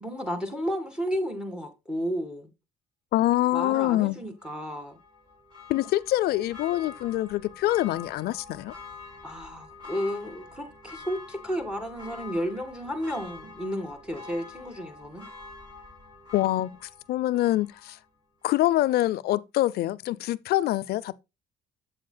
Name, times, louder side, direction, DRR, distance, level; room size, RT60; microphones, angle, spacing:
voice 1, 0.0-2.5 3.5-5.0 9.2-15.2, equal, 5° right, 2.0 m, -32 dB
voice 2, 3.1-4.2 5.7-8.7 16.3-16.7 17.1-18.0 18.4-21.2, left 15 dB, 70° left, 0.5 m, -25 dB
Church bell, 4.4-18.0 18.4-18.5, left 4 dB, 25° right, 4.7 m, -46 dB
8.0 x 7.6 x 2.2 m
cardioid pair, 110°, 17 cm